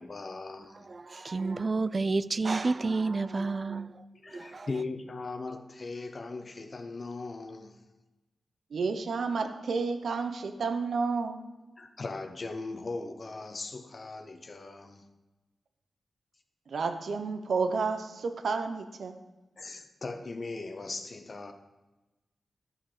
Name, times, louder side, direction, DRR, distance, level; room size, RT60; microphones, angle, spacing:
voice 1, 0.0-0.9 4.2-7.8 11.8-15.0 19.6-21.5, left 3 dB, 45° left, 0.8 m, -39 dB
voice 2, 0.9-4.7, right 3 dB, 40° right, 0.4 m, -30 dB
voice 3, 8.7-11.4 16.7-19.2, right 4 dB, 75° right, 0.8 m, -31 dB
12.5 x 5.9 x 5.0 m
wide cardioid pair, 100°, 0 cm